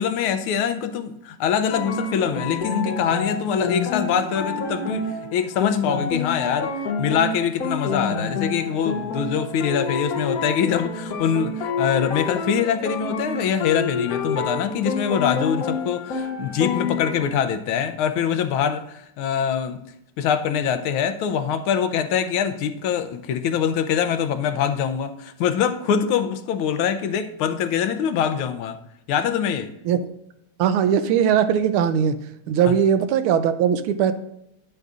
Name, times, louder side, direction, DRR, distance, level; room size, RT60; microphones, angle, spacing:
voice 1, 0.0-6.7 7.0-19.8 20.2-28.8 29.1-29.7 32.6-32.7, left 8 dB, 80° left, 10 dB, 1.5 m, -24 dB
sound 1, 1.7-17.3, left 4 dB, 65° left, 0.9 m, -28 dB
voice 2, 30.6-32.2 32.5-34.1, right 8 dB, 80° right, 11 dB, 1.5 m, -19 dB
10.5 x 7.9 x 2.4 m, 0.81 s
omnidirectional pair, 2.4 m